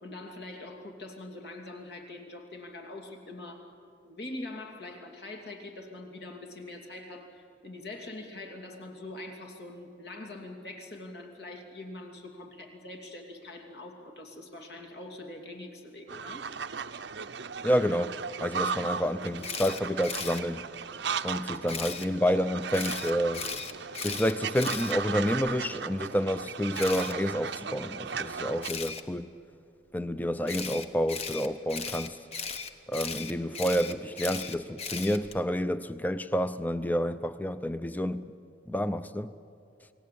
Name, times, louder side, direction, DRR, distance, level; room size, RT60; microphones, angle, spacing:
voice 1, 0.0-3.7 4.0-16.5, left 2 dB, 60° left, 2.8 m, -43 dB
sound 1, 16.1-28.7, right 6 dB, 70° right, 0.7 m, -36 dB
voice 2, 17.6-18.1 18.4-20.7 21.2-23.5 24.0-29.3 29.9-32.2 32.9-38.2 38.7-39.3, equal, 10° left, 0.5 m, -29 dB
Camera, 19.4-20.4 21.7-22.1 22.7-25.5 26.7-27.1 28.6-29.0 30.5-35.4, left 5 dB, 35° left, 1.1 m, -37 dB
29.5 x 19.0 x 8.6 m
head